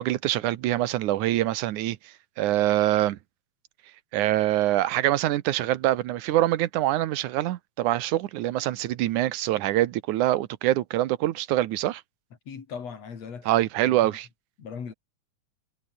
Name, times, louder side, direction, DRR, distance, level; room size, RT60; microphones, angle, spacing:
voice 1, 0.0-3.2 4.1-12.0 13.5-14.3, right 14 dB, 80° right, 2.4 m, -25 dB
voice 2, 12.5-14.2 14.6-14.9, left 6 dB, 55° left, 4.1 m, -39 dB
omnidirectional pair, 3.5 m